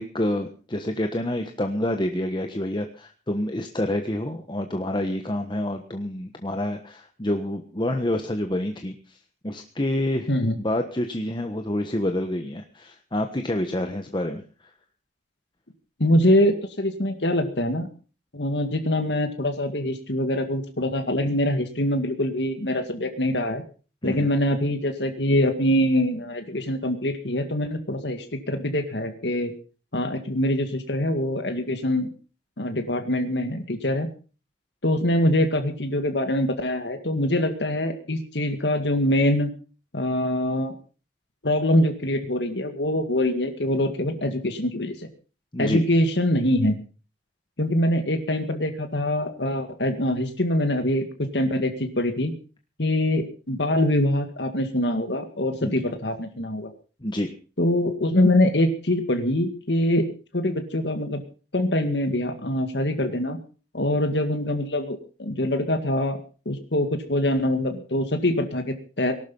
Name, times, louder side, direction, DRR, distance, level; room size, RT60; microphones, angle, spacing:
voice 1, 0.0-9.2 9.4-10.3 10.6-14.4 24.0-24.3 45.5-45.8 55.6-55.9 57.0-57.3, left 1 dB, 25° left, 5 dB, 1.3 m, -28 dB
voice 2, 16.0-17.9 18.3-23.6 24.0-29.5 29.9-32.1 32.6-34.1 34.8-39.5 39.9-40.8 41.4-45.0 45.6-46.8 47.6-51.0 51.3-52.3 52.8-56.7 57.6-60.1 60.3-61.2 61.5-63.4 63.7-66.2 66.5-69.1, left 1 dB, 75° left, 7 dB, 2.1 m, -24 dB
19.0 x 12.0 x 5.5 m, 0.38 s
head